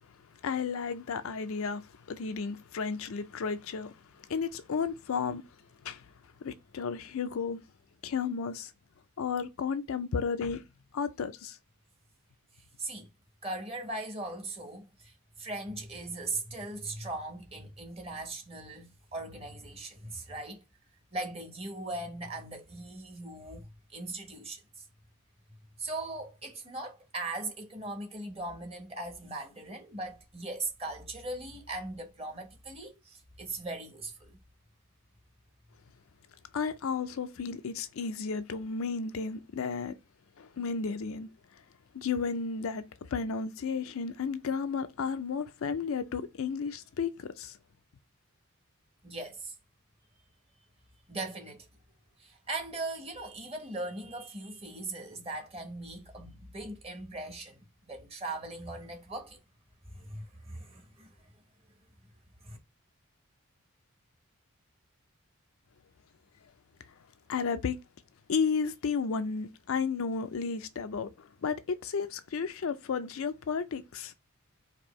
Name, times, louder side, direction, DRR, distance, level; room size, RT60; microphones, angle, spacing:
voice 1, 0.4-5.4 5.8-6.1 6.4-7.6 8.0-8.7 9.2-10.6 10.9-11.6 36.5-39.9 40.4-41.3 41.9-42.9 43.1-47.6 67.3-67.8 68.3-74.1, left 5 dB, 70° left, 0.4 m, -33 dB
voice 2, 13.4-20.6 21.1-24.9 25.8-34.4 49.0-49.5 51.1-51.7 52.2-59.4 59.9-61.2 62.4-62.6, right 2 dB, 25° right, 1.0 m, -39 dB
4.3 x 2.6 x 3.1 m
head